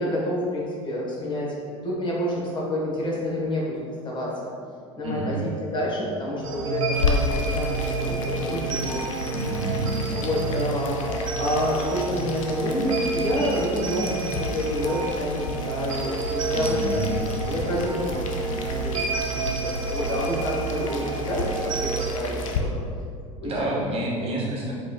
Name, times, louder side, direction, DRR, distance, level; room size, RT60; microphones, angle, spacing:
voice 1, 0.0-4.5 5.0-9.0 10.1-22.8 23.4-23.9 24.2-24.5, left 1 dB, 30° left, -4 dB, 1.0 m, -29 dB
voice 2, 5.0-5.4 9.3-10.2 16.5-17.3 23.4-24.7, right 1 dB, 35° right, -4 dB, 1.0 m, -29 dB
sound 1, 6.4-22.1, right 3 dB, 80° right, 0.4 m, -29 dB
Boiling, 6.9-22.6, left 4 dB, 80° left, 0.4 m, -33 dB
4.6 x 2.2 x 2.7 m, 2.2 s
hypercardioid pair, 75°, 17 cm